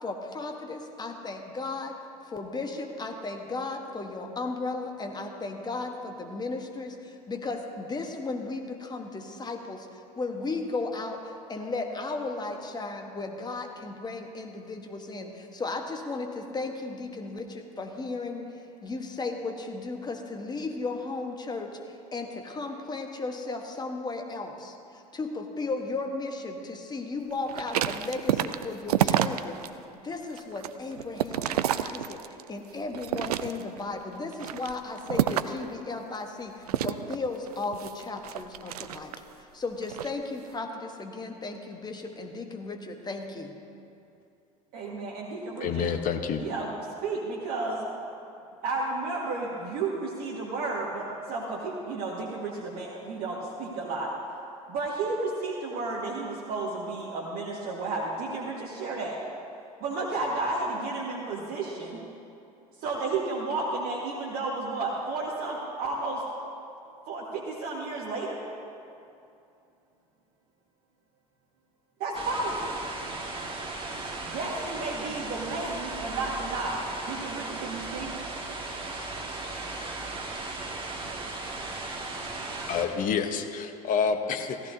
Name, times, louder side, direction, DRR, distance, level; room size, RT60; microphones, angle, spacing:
voice 1, 0.0-1.9 2.3-18.5 18.8-29.6 29.9-39.1 39.4-43.5, left 3 dB, 20° left, 4 dB, 1.3 m, -35 dB
sound 1, 27.5-29.7 30.1-32.5 32.9-33.8 34.3-35.7 36.7-39.3 39.8-40.1, right 11 dB, 75° right, 0.5 m, -29 dB
voice 2, 44.7-45.9 46.4-46.7 47.0-47.8 48.6-54.1 54.7-59.2 59.8-62.0 62.8-66.2 67.1-68.4 72.0-72.7 74.2-78.1, right 3 dB, 50° right, -4 dB, 1.7 m, -32 dB
voice 3, 45.6-46.4 82.7-84.7, left 6 dB, 45° left, 7 dB, 1.0 m, -28 dB
sound 2, 72.1-82.9, right 2 dB, 25° right, 2.0 m, -36 dB
16.5 x 14.5 x 2.8 m, 2.6 s
figure-of-eight pair, 70°, 20 cm